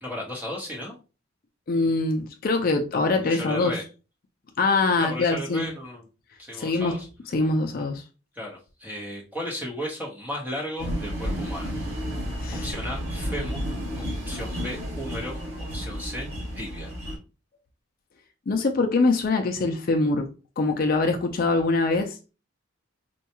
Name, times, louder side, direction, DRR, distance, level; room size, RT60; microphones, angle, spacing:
voice 1, 0.0-1.0 3.1-3.8 5.0-6.0 6.4-7.1 8.3-11.7 12.5-13.6 14.0-16.3 16.5-16.9 21.6-21.7, equal, 10° right, 0.9 m, -35 dB
voice 2, 1.7-3.7 4.6-5.6 6.6-6.9 7.3-8.0 12.4-12.7 18.5-20.3 20.6-22.2, left 3 dB, 45° left, 0.4 m, -23 dB
sound 1, 10.8-17.2, equal, 70° right, 1.8 m, -32 dB
4.3 x 2.3 x 2.8 m
head